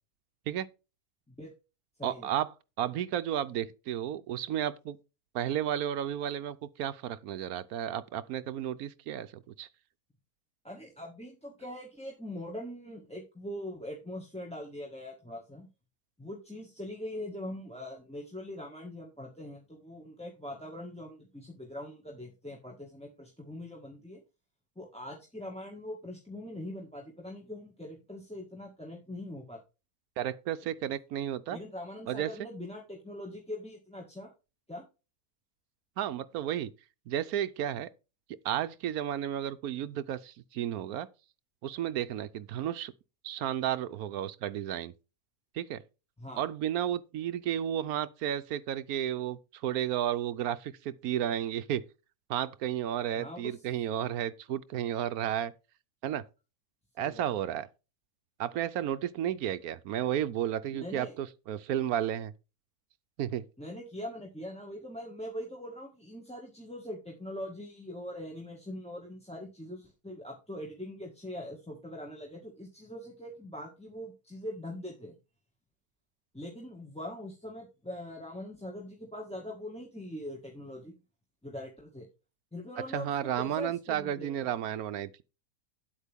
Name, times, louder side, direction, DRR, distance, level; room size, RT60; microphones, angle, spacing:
voice 1, 2.0-2.5 2.8-5.0 5.3-9.7 30.2-31.6 32.1-32.3 36.0-36.7 37.1-37.9 38.4-41.1 41.6-42.9 43.2-44.9 45.5-45.8 46.4-51.8 52.3-55.5 56.0-56.2 57.0-57.7 58.4-62.3 63.2-63.4 82.9-85.2, right 10 dB, 75° right, 1.1 m, -32 dB
voice 2, 10.6-15.7 16.2-24.2 24.7-29.6 31.5-34.3 34.7-34.8 46.2-46.4 53.1-53.5 57.0-57.2 60.7-61.1 63.6-75.1 76.3-80.9 81.4-82.1 82.5-84.5, left 1 dB, 5° left, 1.7 m, -42 dB
9.6 x 8.2 x 3.5 m
omnidirectional pair, 1.6 m